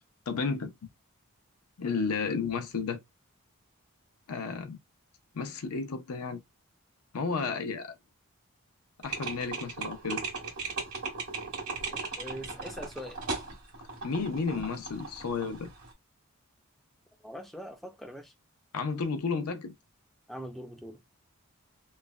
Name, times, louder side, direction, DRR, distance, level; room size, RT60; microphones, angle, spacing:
voice 1, 0.3-0.7 1.8-3.0 4.3-4.8 5.3-6.4 7.1-8.0 9.0-10.2 14.0-15.7 18.7-19.7, left 4 dB, 90° left, 0.5 m, -32 dB
sound 1, 9.0-15.9, right 4 dB, 90° right, 1.4 m, -38 dB
voice 2, 11.9-13.2 17.2-18.3 20.3-21.0, equal, ahead, 0.3 m, -42 dB
3.1 x 2.1 x 2.3 m
head